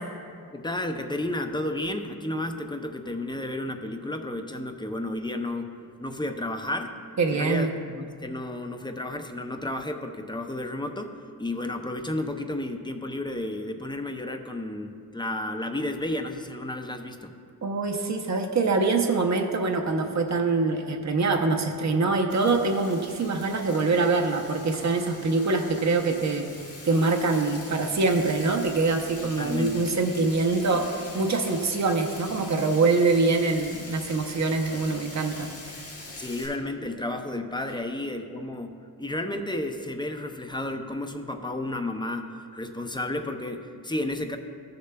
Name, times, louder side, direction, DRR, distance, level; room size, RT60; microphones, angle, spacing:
voice 1, 0.5-7.0 7.3-17.3 29.2-29.9 36.2-42.2 42.5-44.4, left 1 dB, 15° left, 6 dB, 0.4 m, -32 dB
voice 2, 7.2-7.7 17.6-26.5 26.8-35.5, right 3 dB, 50° right, 3 dB, 0.7 m, -24 dB
Frying (food), 22.3-36.5, left 2 dB, 40° left, 1.5 m, -43 dB
15.0 x 6.6 x 2.2 m, 2.3 s
wide cardioid pair, 130°, 36 cm